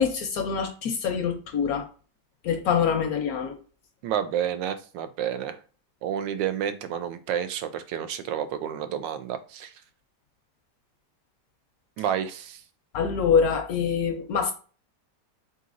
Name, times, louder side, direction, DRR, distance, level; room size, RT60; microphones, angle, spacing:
voice 1, 0.0-1.8 2.4-3.6 12.9-14.5, left 6 dB, 70° left, 0.9 m, -25 dB
voice 2, 4.0-5.6 6.0-9.7 12.0-12.6, right 9 dB, 90° right, 1.3 m, -30 dB
4.0 x 4.0 x 2.5 m
omnidirectional pair, 1.9 m